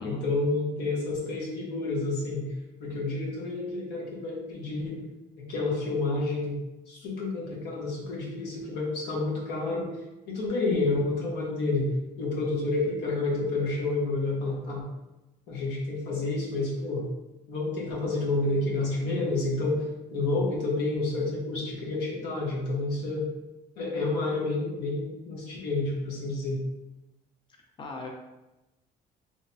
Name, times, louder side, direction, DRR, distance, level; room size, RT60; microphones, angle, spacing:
voice 1, 0.0-2.5 2.8-5.0 5.4-6.6 6.9-9.9 10.3-11.9 12.2-14.9 15.5-17.1 17.5-19.9 20.1-23.3 23.8-26.6, left 2 dB, 90° left, -4 dB, 1.1 m, -29 dB
voice 2, 27.8-28.1, left 3 dB, 30° left, 0 dB, 0.6 m, -37 dB
3.2 x 2.1 x 4.1 m, 1.0 s
cardioid pair, 110°, 17 cm